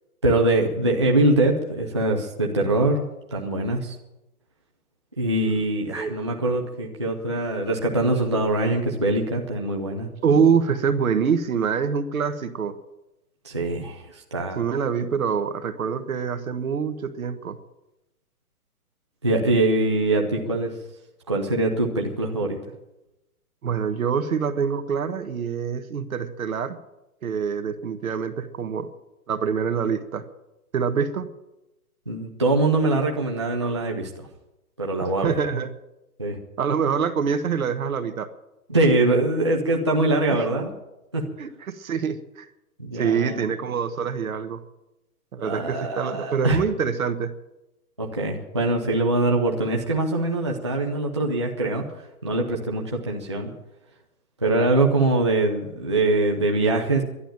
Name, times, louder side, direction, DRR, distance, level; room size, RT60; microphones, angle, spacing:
voice 1, 0.2-3.1 3.3-3.9 5.2-10.1 13.4-14.6 19.2-20.8 21.3-22.6 32.1-34.3 34.8-35.4 36.2-36.4 38.7-40.7 41.1-41.2 42.8-43.4 45.4-46.6 48.0-53.5 54.4-57.0, right 2 dB, 20° right, 0 dB, 0.6 m, -23 dB
voice 2, 10.2-12.8 14.5-17.6 23.6-26.8 27.2-28.9 29.3-30.2 30.7-31.3 35.2-35.7 36.6-38.3 40.3-40.4 41.4-42.5 42.9-44.6 45.3-47.3, right 6 dB, 65° right, 10 dB, 1.5 m, -25 dB
11.5 x 11.5 x 8.8 m, 0.94 s
hypercardioid pair, 175°, 45 cm